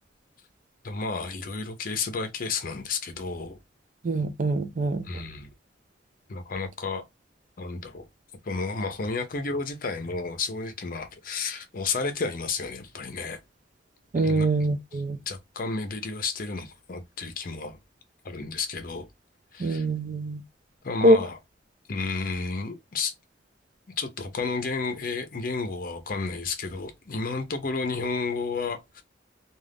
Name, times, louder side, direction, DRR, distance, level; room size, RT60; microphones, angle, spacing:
voice 1, 0.8-3.6 5.0-5.5 6.3-7.0 7.6-8.1 8.4-13.4 14.2-14.5 15.3-17.8 18.2-19.1 19.5-19.8 20.8-21.4 21.9-23.1 24.0-29.0, left 4 dB, 50° left, 0.6 m, -31 dB
voice 2, 4.0-5.1 14.1-15.2 19.6-20.4 21.0-21.2, right 1 dB, 45° right, 0.4 m, -23 dB
2.4 x 2.3 x 3.3 m
head